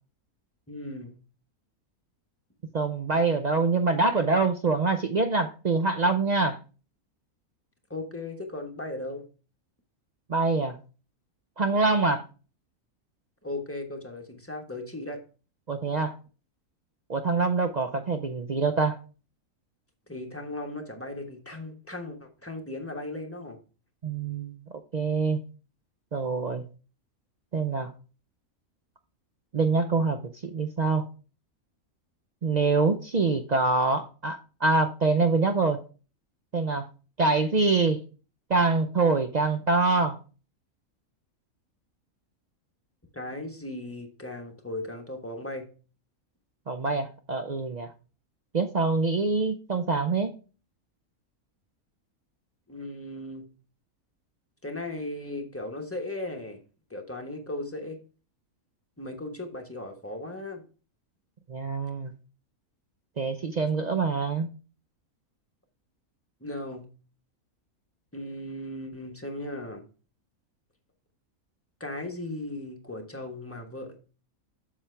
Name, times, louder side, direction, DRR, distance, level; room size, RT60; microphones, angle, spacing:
voice 1, 0.7-1.2 7.9-9.2 13.4-15.2 20.1-23.6 43.1-45.7 52.7-53.5 54.6-56.6 56.9-58.0 59.0-60.6 66.4-66.9 68.1-69.9 71.8-73.9, left 1 dB, 10° left, 3 dB, 1.1 m, -37 dB
voice 2, 2.7-6.6 10.3-10.8 11.6-12.2 15.7-16.1 17.1-19.0 24.0-24.6 24.9-25.4 26.1-26.6 27.5-27.9 29.5-31.0 32.4-35.8 36.5-36.9 37.2-38.0 38.5-40.2 46.7-47.9 48.5-50.3 61.5-62.1 63.2-64.5, right 3 dB, 60° right, 7 dB, 0.4 m, -25 dB
7.3 x 7.1 x 3.3 m, 0.35 s
omnidirectional pair, 1.5 m